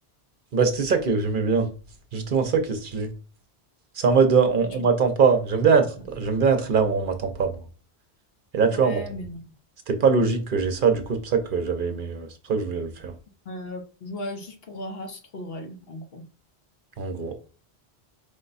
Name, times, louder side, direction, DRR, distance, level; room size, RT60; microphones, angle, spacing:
voice 1, 0.5-1.7 2.1-3.1 3.9-7.6 8.5-9.0 9.9-13.1 17.0-17.3, right 5 dB, 55° right, 0.8 m, -22 dB
voice 2, 8.7-9.4 13.4-16.3, left 1 dB, 65° left, 1.1 m, -37 dB
5.1 x 2.2 x 3.9 m
omnidirectional pair, 1.1 m